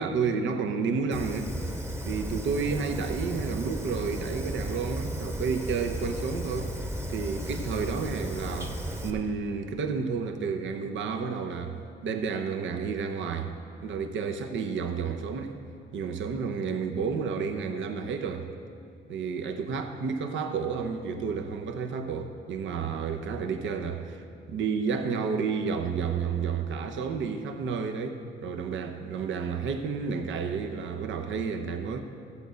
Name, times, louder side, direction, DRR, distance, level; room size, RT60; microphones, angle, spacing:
voice 1, 0.0-1.5 2.1-6.7 7.1-13.5 13.8-15.6 15.9-18.5 19.1-32.0, right 5 dB, 70° right, 6 dB, 0.9 m, -31 dB
Fire, 1.1-9.1, right 1 dB, 15° right, 1.0 m, -34 dB
14.0 x 8.1 x 5.1 m, 2.3 s
cardioid pair, 90°, 20 cm